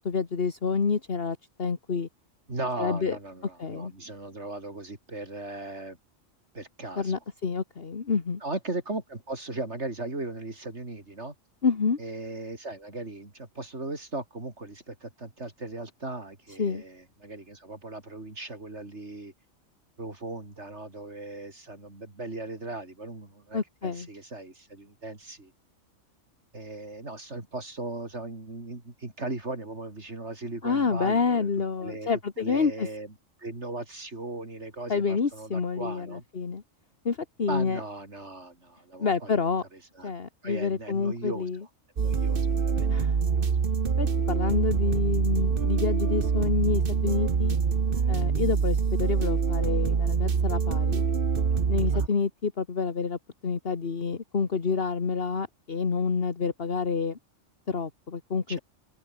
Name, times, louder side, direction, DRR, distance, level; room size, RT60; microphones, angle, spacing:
voice 1, 0.0-2.1 2.8-3.2 3.6-3.9 7.0-8.4 11.6-12.0 16.6-16.8 23.5-24.1 30.6-32.9 34.9-36.6 37.1-37.8 39.0-39.6 40.0-41.6 42.9-43.2 44.0-47.6 48.1-51.0 51.7-57.2 57.7-58.6, left 5 dB, 50° left, 1.8 m, -28 dB
voice 2, 2.5-6.0 6.5-7.2 8.4-11.3 12.0-19.3 20.0-25.5 26.5-31.5 31.8-32.1 32.4-33.1 33.4-36.2 37.5-39.4 39.9-40.1 40.4-41.5 42.0-43.1 43.3-43.5 51.9-52.1 58.5-58.6, right 2 dB, 60° right, 4.8 m, -38 dB
sound 1, 42.0-52.1, right 6 dB, 45° right, 1.3 m, -25 dB
open air
omnidirectional pair, 1.3 m